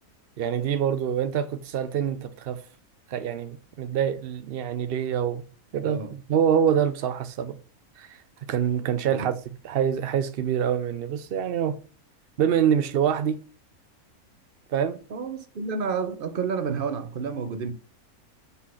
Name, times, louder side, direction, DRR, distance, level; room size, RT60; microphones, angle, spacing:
voice 1, 0.4-2.6 3.1-5.4 5.7-7.6 8.0-8.2 8.5-11.8 12.4-13.4 14.7-15.0, right 8 dB, 70° right, 0.5 m, -25 dB
voice 2, 5.8-6.2 9.1-9.3 15.1-17.7, right 5 dB, 45° right, 0.9 m, -30 dB
6.1 x 5.6 x 5.6 m
omnidirectional pair, 1.6 m